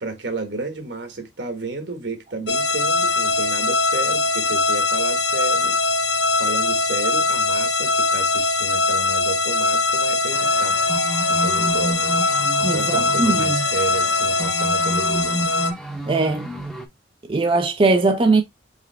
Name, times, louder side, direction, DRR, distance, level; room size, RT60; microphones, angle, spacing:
voice 1, 0.0-5.8 6.4-10.8 11.3-12.2 12.6-15.4, right 3 dB, 75° right, 1.4 m, -32 dB
sound 1, 2.5-15.7, left 3 dB, 85° left, 0.8 m, -21 dB
sound 2, 10.3-16.9, right 1 dB, 5° left, 0.8 m, -31 dB
voice 2, 12.6-13.6 16.1-16.5 17.3-18.4, right 3 dB, 30° right, 0.5 m, -20 dB
4.9 x 3.2 x 3.3 m
head